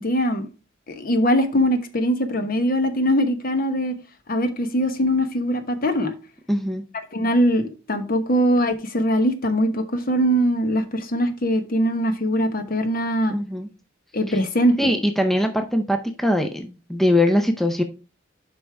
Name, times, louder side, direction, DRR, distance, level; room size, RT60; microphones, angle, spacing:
voice 1, 0.0-0.5 0.9-4.0 4.3-6.1 7.1-13.3 14.1-14.8, equal, 45° left, 1.1 m, -21 dB
voice 2, 6.5-6.8 13.3-13.7 14.8-17.8, left 1 dB, ahead, 0.6 m, -21 dB
7.9 x 5.3 x 3.4 m
head